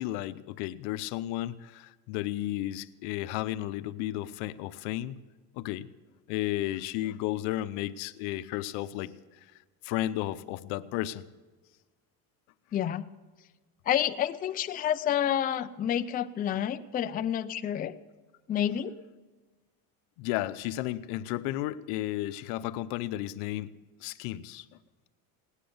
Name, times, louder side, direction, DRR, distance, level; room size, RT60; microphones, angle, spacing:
voice 1, 0.0-5.2 5.5-5.9 6.3-9.1 9.8-11.2 20.2-23.7 24.0-24.7, left 15 dB, 85° left, 13 dB, 0.8 m, -33 dB
voice 2, 12.7-13.0 13.9-18.0 18.5-18.9, left 10 dB, 20° left, 9 dB, 0.4 m, -29 dB
18.0 x 10.0 x 7.0 m, 1.3 s
cardioid pair, 135°, 41 cm